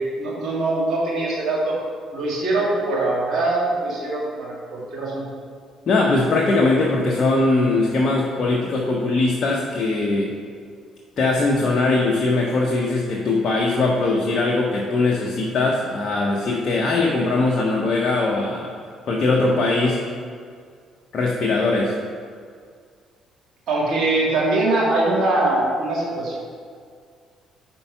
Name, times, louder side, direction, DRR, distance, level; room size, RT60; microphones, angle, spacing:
voice 1, 0.2-1.7 2.1-5.2 23.7-26.4, right 2 dB, 60° right, -4 dB, 1.8 m, -22 dB
voice 2, 5.9-10.3 11.2-18.7 19.0-20.0 21.1-21.9, left 3 dB, 50° left, -1 dB, 0.8 m, -20 dB
5.5 x 4.5 x 5.6 m, 2.1 s
hypercardioid pair, 50°, 0 cm